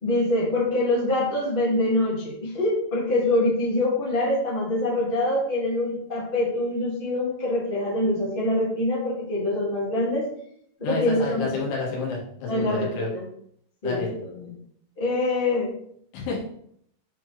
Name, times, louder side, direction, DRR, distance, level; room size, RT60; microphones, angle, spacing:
voice 1, 0.0-10.2 10.8-11.5 12.5-13.2 13.8-14.1 15.0-15.7, left 1 dB, 50° left, -6 dB, 0.6 m, -24 dB
voice 2, 10.8-13.1 13.8-14.1 16.1-16.4, left 3 dB, 70° left, -4 dB, 4.2 m, -29 dB
8.3 x 4.5 x 3.4 m, 0.68 s
omnidirectional pair, 5.7 m